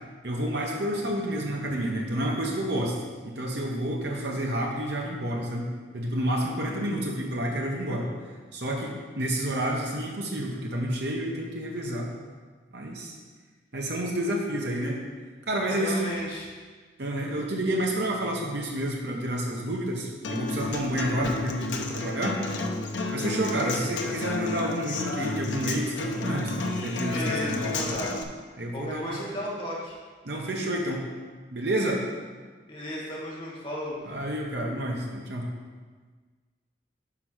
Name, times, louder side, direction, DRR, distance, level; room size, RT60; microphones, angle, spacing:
voice 1, 0.2-3.0 3.2-5.7 5.9-8.1 8.5-12.1 12.7-13.1 13.7-15.0 15.5-16.1 17.0-22.4 23.1-28.1 28.6-29.2 30.2-31.0 31.5-32.0 34.1-35.5, right 1 dB, 65° right, -1 dB, 0.9 m, -29 dB
voice 2, 15.7-16.5 27.1-28.2 28.7-29.9 32.7-34.0, left 1 dB, 30° left, -5 dB, 1.8 m, -34 dB
Human voice / Acoustic guitar, 20.2-28.2, left 2 dB, 85° left, 0.7 m, -31 dB
6.0 x 4.7 x 6.2 m, 1.4 s
head